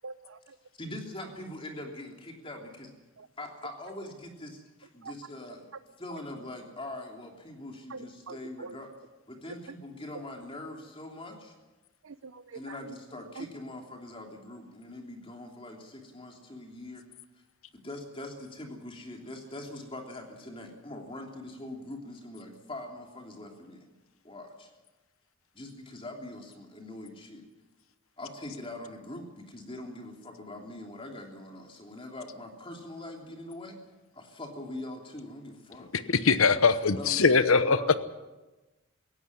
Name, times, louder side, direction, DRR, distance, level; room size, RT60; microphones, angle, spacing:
voice 1, 0.0-0.6 3.2-3.3 5.0-5.1 5.7-5.8 7.9-8.8 9.5-9.8 12.0-13.0 13.4-13.5, right 4 dB, 80° right, 11 dB, 0.7 m, -44 dB
voice 2, 0.7-2.9 3.4-5.7 6.0-8.9 9.3-11.5 12.5-17.0 17.7-23.9 24.2-24.7 25.5-27.4 28.2-33.8 34.1-35.9 36.7-38.0, left 1 dB, 25° left, 2 dB, 3.2 m, -42 dB
voice 3, 35.9-37.8, left 4 dB, 75° left, 13 dB, 1.0 m, -22 dB
18.5 x 16.0 x 9.8 m, 1.1 s
head